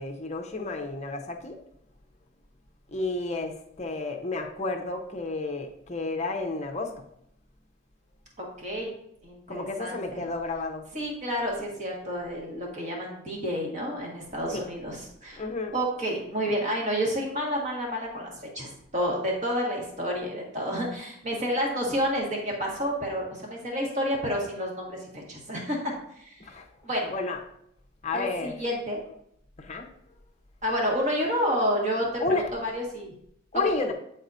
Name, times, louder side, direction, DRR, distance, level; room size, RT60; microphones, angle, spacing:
voice 1, 0.0-1.6 2.9-6.9 9.5-10.8 14.5-14.7 15.4-15.7 26.4-26.6 27.1-27.4 28.0-28.6 29.6-29.9 32.2-32.4 33.5-33.9, left 3 dB, 35° left, 3 dB, 0.7 m, -31 dB
voice 2, 8.6-8.9 9.2-10.2 10.9-15.4 15.7-26.3 26.8-27.1 28.1-29.0 30.6-33.1, equal, 35° right, -2 dB, 1.6 m, -30 dB
9.3 x 4.1 x 2.7 m, 0.73 s
head